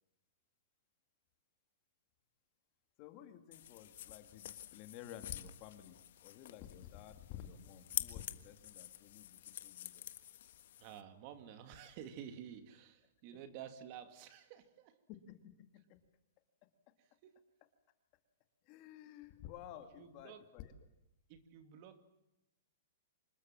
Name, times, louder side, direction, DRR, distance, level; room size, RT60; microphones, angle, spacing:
voice 1, 3.0-10.1 13.3-13.4 15.3-16.0 16.9-17.0 18.6-20.7, left 10 dB, 30° left, 8 dB, 2.2 m, -53 dB
sound 1, 3.5-11.0, left 12 dB, 55° left, 1.4 m, -47 dB
voice 2, 10.8-15.0 17.2-17.3 20.0-20.4 21.3-22.1, right 9 dB, 35° right, 9 dB, 2.3 m, -51 dB
26.0 x 21.5 x 7.5 m, 0.90 s
hypercardioid pair, 170°, 0 cm